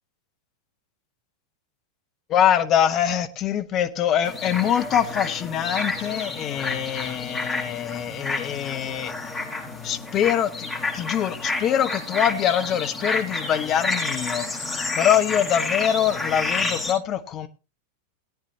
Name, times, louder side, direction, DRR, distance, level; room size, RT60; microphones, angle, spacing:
voice 1, 2.3-9.1 9.8-10.7 10.9-17.5, left 9 dB, 35° left, 1.1 m, -24 dB
sound 1, 4.2-16.9, left 3 dB, 15° left, 8.0 m, -30 dB
18.0 x 9.6 x 2.9 m
figure-of-eight pair, 90°, 0 cm